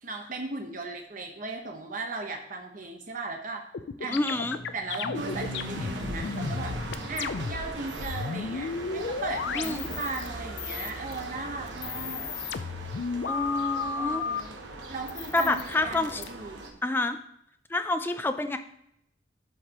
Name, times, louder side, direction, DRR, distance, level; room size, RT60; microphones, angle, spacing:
voice 1, 0.0-3.6 4.0-4.3 4.7-6.8 7.1-12.3 14.0-14.6 14.9-16.7, right 3 dB, 45° right, 2 dB, 1.0 m, -37 dB
sound 1, 3.7-10.3 10.6-11.2 11.7-14.4 15.1-16.3, left 5 dB, 70° left, 0.4 m, -33 dB
sound 2, 4.1-9.7 10.2-12.1, left 1 dB, 40° left, 1.0 m, -43 dB
voice 2, 4.1-4.6 9.5-9.9 13.2-14.3 15.3-16.2 16.8-17.2 17.7-18.6, left 2 dB, 10° left, 8 dB, 0.4 m, -28 dB
sound 3, 5.1-16.7, right 2 dB, 80° right, 1.1 m, -40 dB
12.0 x 4.9 x 2.9 m, 0.74 s
head